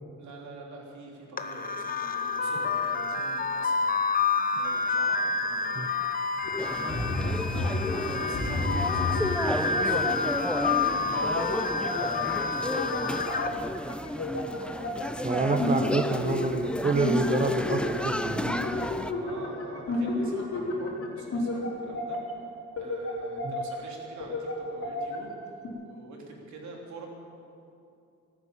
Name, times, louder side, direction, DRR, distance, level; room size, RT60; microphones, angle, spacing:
voice 1, 0.2-6.3 6.8-10.5 10.9-11.5 11.9-13.4 19.1-22.2 22.8-25.4 25.8-27.1, right 3 dB, 70° right, -1 dB, 3.5 m, -46 dB
sound 1, 1.4-13.5, left 4 dB, 30° left, 1.1 m, -29 dB
sound 2, 6.4-10.8 11.2-15.2 15.5-16.7 17.0-22.3 22.8-23.9 24.2-25.3 25.6-25.7, left 2 dB, 50° left, 4.0 m, -32 dB
sound 3, 6.6-19.1, left 1 dB, 5° left, 0.6 m, -33 dB
voice 2, 15.2-18.8 23.4-23.6, right 3 dB, 25° right, 5 dB, 1.0 m, -28 dB
13.5 x 12.0 x 8.8 m, 2.6 s
cardioid pair, 90°, 30 cm